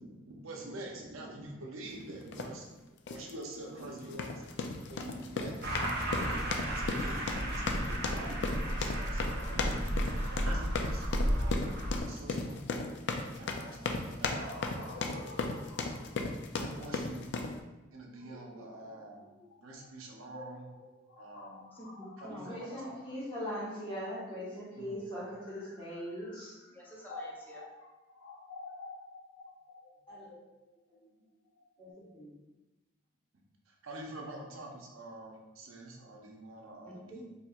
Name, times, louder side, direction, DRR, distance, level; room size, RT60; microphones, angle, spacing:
voice 1, 0.0-2.7 3.1-4.5 4.9-10.0 10.3-12.6 13.1-15.0 16.6-17.3 17.9-19.2 19.6-20.7 21.2-21.6 22.2-23.0 24.7-25.0 33.8-37.2, right 2 dB, 85° right, 0 dB, 0.7 m, -46 dB
sound 1, 2.3-2.5 3.1-3.3 4.0-17.6, left 3 dB, 60° left, 0.4 m, -36 dB
sound 2, 5.6-12.0, equal, 55° right, 0.8 m, -33 dB
sound 3, 14.4-24.2 25.0-31.9, left 3 dB, 85° left, 0.8 m, -51 dB
voice 2, 21.7-22.6 26.6-27.6 36.9-37.2, equal, 10° left, -3 dB, 0.6 m, -48 dB
voice 3, 22.5-26.5 30.1-30.2 31.8-32.3, equal, 25° left, -9 dB, 1.4 m, -40 dB
4.2 x 2.8 x 2.3 m, 1.1 s
head